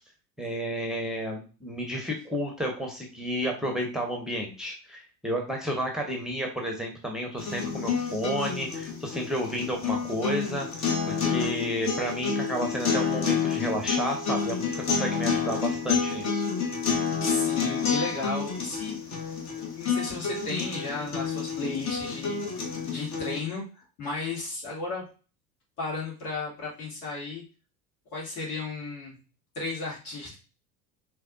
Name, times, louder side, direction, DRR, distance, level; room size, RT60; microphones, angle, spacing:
voice 1, 0.4-10.9 11.2-16.4, equal, ahead, 0 dB, 1.0 m, -31 dB
sound 1, 7.4-23.4, left 6 dB, 35° left, 1.3 m, -29 dB
voice 2, 17.2-19.3 19.5-22.4 22.8-25.0 25.8-27.4 28.1-29.2 29.5-30.4, left 3 dB, 65° left, -4 dB, 2.5 m, -34 dB
5.6 x 3.3 x 2.6 m, 0.35 s
figure-of-eight pair, 70°, 49 cm